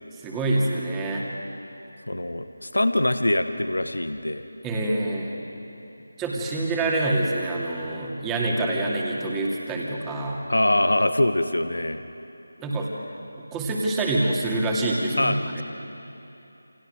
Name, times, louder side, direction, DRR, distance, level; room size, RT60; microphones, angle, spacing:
voice 1, 0.1-1.3 4.6-5.4 6.2-10.4 12.6-12.9 13.4-15.6, right 2 dB, 10° right, -2 dB, 2.5 m, -26 dB
voice 2, 2.1-4.4 10.5-12.0 15.2-15.6, left 1 dB, 70° left, 9 dB, 1.4 m, -23 dB
29.0 x 28.5 x 6.6 m, 2.9 s
figure-of-eight pair, 160°, 0 cm